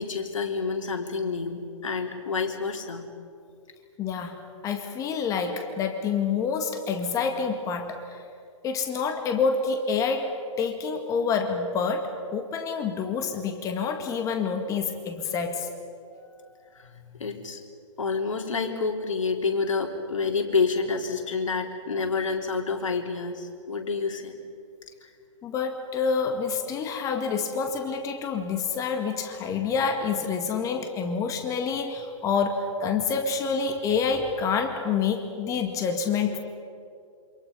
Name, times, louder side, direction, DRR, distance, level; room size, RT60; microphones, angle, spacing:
voice 1, 0.0-3.1 16.4-17.6 18.0-24.3 25.0-25.1, left 4 dB, 75° left, 2 dB, 3.8 m, -28 dB
voice 2, 4.0-8.2 8.6-15.7 25.4-36.4, left 5 dB, 20° left, 5 dB, 2.0 m, -27 dB
28.0 x 26.5 x 5.6 m, 2.4 s
hypercardioid pair, 135°, 17 cm